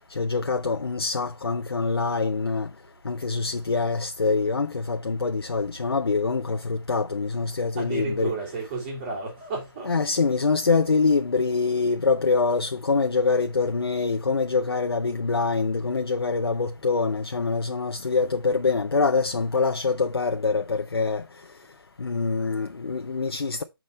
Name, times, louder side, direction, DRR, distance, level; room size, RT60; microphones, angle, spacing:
voice 1, 0.1-2.7 3.0-8.3 9.9-21.2 22.0-23.6, left 4 dB, 75° left, 0.7 m, -25 dB
voice 2, 7.8-10.0, right 3 dB, 35° right, 3.4 m, -32 dB
6.1 x 5.3 x 4.0 m
figure-of-eight pair, 145°, 13 cm